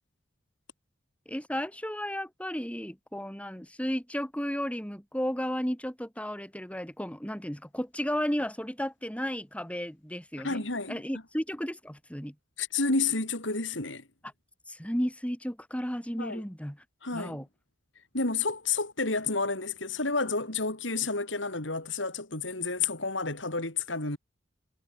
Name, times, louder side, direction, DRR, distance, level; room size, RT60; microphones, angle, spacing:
voice 1, 1.3-10.6 10.9-12.3 14.7-16.8 17.1-17.5, equal, 5° left, 7.1 m, -33 dB
voice 2, 10.4-11.0 12.6-14.0 16.2-16.4 17.0-17.4 18.1-24.2, left 4 dB, 70° left, 5.0 m, -30 dB
head